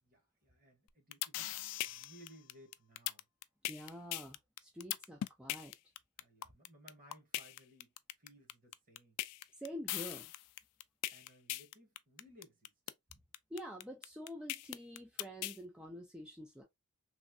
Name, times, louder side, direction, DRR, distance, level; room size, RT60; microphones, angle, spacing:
voice 1, 0.0-3.2 6.2-7.9 8.2-9.2 11.1-12.7, equal, 40° right, 1.2 m, -61 dB
sound 1, 0.9-15.6, left 15 dB, 85° left, 0.3 m, -40 dB
voice 2, 3.7-5.7 9.6-10.3 13.5-16.6, equal, 5° right, 0.4 m, -47 dB
3.1 x 2.6 x 2.5 m
head